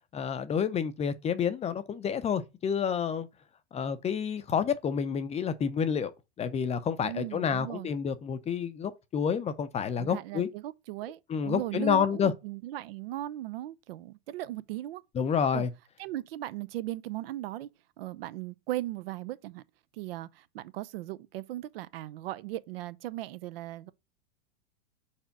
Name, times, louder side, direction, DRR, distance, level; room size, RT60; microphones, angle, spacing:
voice 1, 0.1-3.3 3.7-6.1 6.4-10.5 11.3-12.3 15.1-15.7, left 7 dB, 20° left, 0.6 m, -29 dB
voice 2, 7.0-7.9 10.0-15.0 15.5-15.7 16.0-17.7 18.0-19.6 19.9-23.9, right 15 dB, 60° right, 0.6 m, -37 dB
4.9 x 4.4 x 5.9 m
hypercardioid pair, 105°, 33 cm